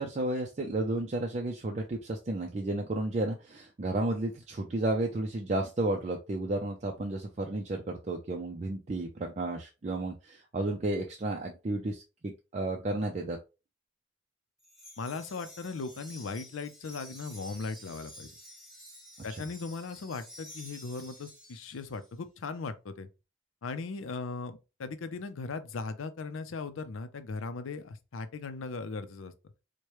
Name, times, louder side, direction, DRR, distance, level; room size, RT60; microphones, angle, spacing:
voice 1, 0.0-13.4, right 2 dB, 35° right, 0.4 m, -32 dB
Wind chime, 14.6-22.1, equal, ahead, 0.9 m, -50 dB
voice 2, 15.0-18.3 19.2-23.1 23.6-29.3, left 4 dB, 85° left, 0.5 m, -38 dB
4.7 x 2.2 x 3.0 m
head